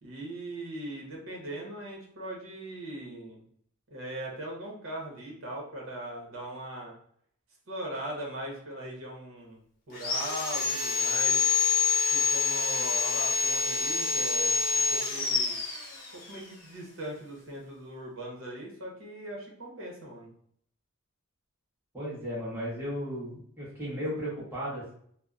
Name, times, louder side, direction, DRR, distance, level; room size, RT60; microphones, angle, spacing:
voice 1, 0.0-3.4 3.9-6.9 7.7-9.6 9.9-11.5 12.1-15.6 16.1-20.3, right 1 dB, 70° right, -2 dB, 0.8 m, -40 dB
Sawing, 9.9-16.4, left 5 dB, 45° left, 0.6 m, -27 dB
voice 2, 21.9-24.9, equal, 10° right, -9 dB, 1.1 m, -35 dB
2.7 x 2.0 x 2.3 m, 0.64 s
head